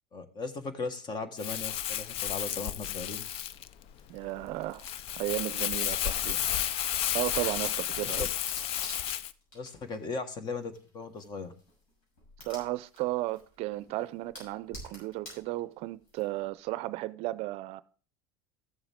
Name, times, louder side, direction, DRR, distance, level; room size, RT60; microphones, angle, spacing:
voice 1, 0.1-3.2 8.2-8.3 9.5-11.5, left 4 dB, 35° left, 1.5 m, -37 dB
Crumpling crinkling, 1.4-9.3, left 11 dB, 50° left, 0.5 m, -32 dB
sound 1, 3.2-16.6, left 1 dB, 75° left, 6.3 m, -53 dB
voice 2, 4.1-4.9 5.2-6.4 7.1-8.3 12.4-17.8, right 17 dB, 60° right, 0.5 m, -34 dB
14.5 x 7.2 x 3.6 m
supercardioid pair, 115°, 12 cm